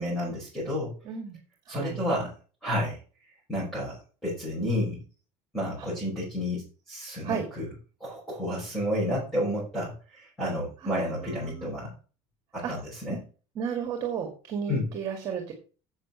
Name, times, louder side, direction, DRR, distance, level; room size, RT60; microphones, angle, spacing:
voice 1, 0.0-0.9 1.7-2.3 2.6-3.0 3.5-5.0 5.5-7.7 8.0-11.9 12.5-13.2 14.7-14.9, left 1 dB, 5° left, -7 dB, 5.6 m, -31 dB
voice 2, 1.1-1.4 1.7-2.0 7.2-7.4 10.8-11.7 12.6-12.7 13.6-15.5, right 7 dB, 30° right, 3 dB, 2.4 m, -33 dB
8.1 x 7.5 x 6.8 m, 0.37 s
cardioid pair, 170°, 13 cm